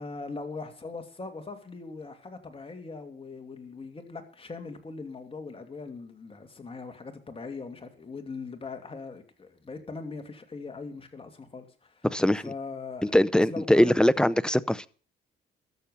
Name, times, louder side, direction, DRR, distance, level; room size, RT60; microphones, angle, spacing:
voice 1, 0.0-12.1 12.4-13.2 13.5-14.2, left 4 dB, 30° left, 2.6 m, -40 dB
voice 2, 12.0-12.5 13.1-14.9, left 1 dB, 5° left, 0.6 m, -22 dB
13.5 x 7.2 x 8.1 m
cardioid pair, 90°, 20 cm